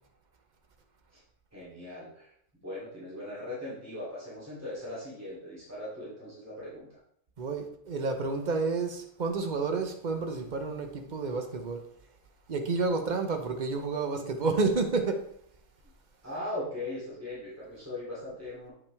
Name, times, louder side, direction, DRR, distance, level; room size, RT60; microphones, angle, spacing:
voice 1, 1.5-2.3 2.6-7.0 16.2-18.7, left 1 dB, 10° right, -8 dB, 3.1 m, -39 dB
voice 2, 7.4-11.8 12.5-15.2, right 4 dB, 40° right, 5 dB, 1.0 m, -30 dB
8.4 x 5.6 x 3.5 m, 0.68 s
omnidirectional pair, 1.3 m